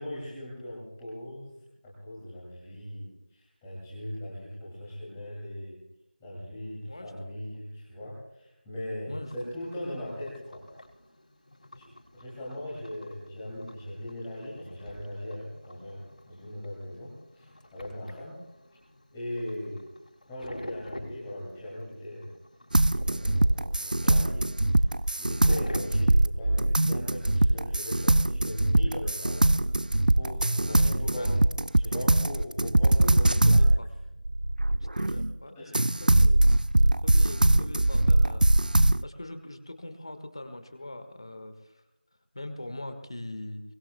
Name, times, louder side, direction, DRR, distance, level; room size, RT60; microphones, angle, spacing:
voice 1, 0.0-1.5 1.8-5.8 6.2-10.7 11.7-18.4 19.1-19.8 20.3-22.3 23.0-24.5 25.2-29.5 30.1-31.4 31.8-33.6 35.5-36.0, left 1 dB, 5° left, -6 dB, 2.4 m, -39 dB
voice 2, 9.1-9.5 9.9-10.0 29.8-29.9 30.7-31.3 33.2-33.9 34.9-36.4 36.8-38.4 39.0-41.5 42.3-43.6, left 1 dB, 30° left, 8 dB, 1.5 m, -42 dB
sound 1, 9.2-25.8, left 1 dB, 50° left, 5.7 m, -48 dB
sound 2, 22.7-35.3 35.7-39.0, right 1 dB, 55° right, 0.4 m, -22 dB
23.0 x 20.0 x 2.2 m, 0.92 s
figure-of-eight pair, 175°, 5 cm